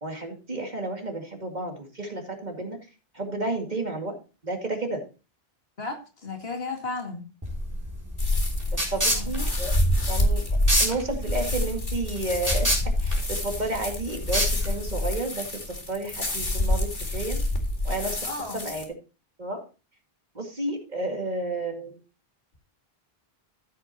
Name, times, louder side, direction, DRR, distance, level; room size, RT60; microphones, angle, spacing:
voice 1, 0.0-2.8 3.1-4.1 4.4-5.0 8.7-9.7 10.1-10.4 10.8-17.4 17.8-18.3 18.5-18.9 19.4-19.6 20.3-22.0, right 2 dB, 45° right, 2.4 m, -31 dB
voice 2, 5.8-7.3 8.8-9.3 18.2-18.6, left 3 dB, 75° left, 2.5 m, -34 dB
sound 1, 7.4-15.1, equal, 15° right, 4.1 m, -29 dB
sound 2, 8.2-18.8, left 1 dB, 50° left, 2.3 m, -27 dB
14.0 x 8.3 x 2.9 m
omnidirectional pair, 1.0 m